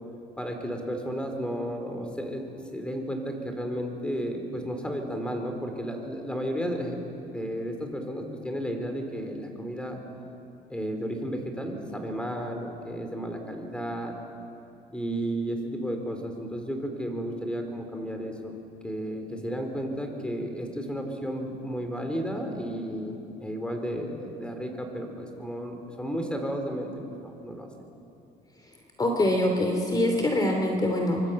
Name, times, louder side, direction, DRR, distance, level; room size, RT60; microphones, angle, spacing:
voice 1, 0.4-2.4 2.7-7.0 7.3-10.0 10.7-14.1 14.9-18.5 18.8-26.9 27.2-27.7, equal, 5° left, 4 dB, 4.5 m, -33 dB
voice 2, 28.6-31.2, left 1 dB, 25° left, 2 dB, 3.0 m, -25 dB
24.5 x 24.5 x 8.6 m, 2.7 s
cardioid pair, 110°, 17 cm